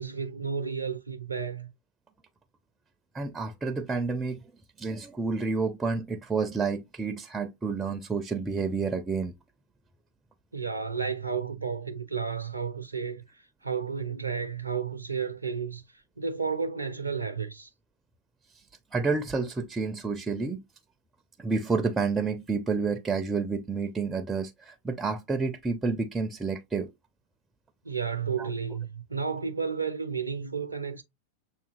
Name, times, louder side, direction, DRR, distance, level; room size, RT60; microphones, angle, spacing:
voice 1, 0.0-1.7 10.5-17.7 27.8-31.0, right 6 dB, 80° right, 0.4 m, -32 dB
voice 2, 3.1-4.4 4.8-9.3 18.9-20.6 21.4-26.9 28.4-28.5, right 4 dB, 15° right, 0.5 m, -29 dB
6.9 x 2.7 x 2.5 m
figure-of-eight pair, 90°, 0 cm